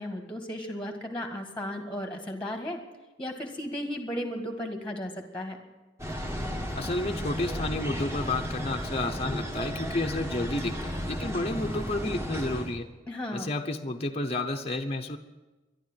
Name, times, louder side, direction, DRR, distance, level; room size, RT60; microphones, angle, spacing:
voice 1, 0.0-2.8 3.2-5.6 13.1-13.5, equal, 5° left, 4 dB, 1.7 m, -35 dB
sound 1, 6.0-12.8, equal, 15° right, 1.8 m, -34 dB
voice 2, 6.8-12.9 13.3-15.2, left 2 dB, 30° left, 5 dB, 0.8 m, -31 dB
12.5 x 11.5 x 8.9 m, 1.1 s
head